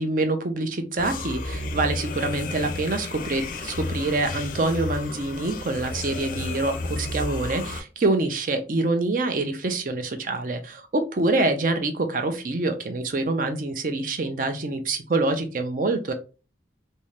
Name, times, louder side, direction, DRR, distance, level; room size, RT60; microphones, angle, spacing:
voice 1, 0.0-16.1, right 2 dB, 45° right, 7 dB, 0.5 m, -26 dB
sound 1, 1.0-7.8, left 2 dB, 45° left, 0.4 m, -32 dB
2.7 x 2.7 x 3.2 m, 0.33 s
head